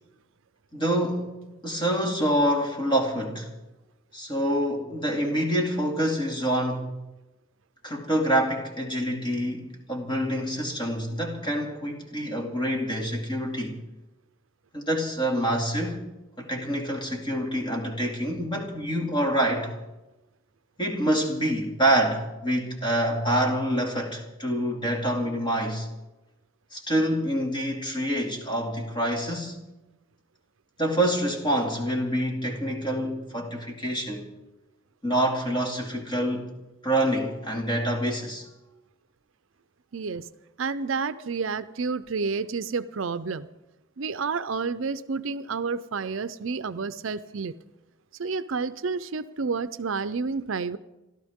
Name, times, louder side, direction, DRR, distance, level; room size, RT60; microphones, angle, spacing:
voice 1, 0.7-3.5 4.1-6.9 7.8-13.8 14.7-16.1 16.4-19.7 20.8-25.9 26.7-29.6 30.8-34.3 35.0-36.5 36.8-38.5, right 1 dB, 25° left, 2.5 m, -26 dB
voice 2, 39.9-40.3 40.6-43.5 44.0-47.5 48.2-50.8, right 4 dB, 65° right, 0.5 m, -30 dB
29.5 x 13.0 x 3.6 m
head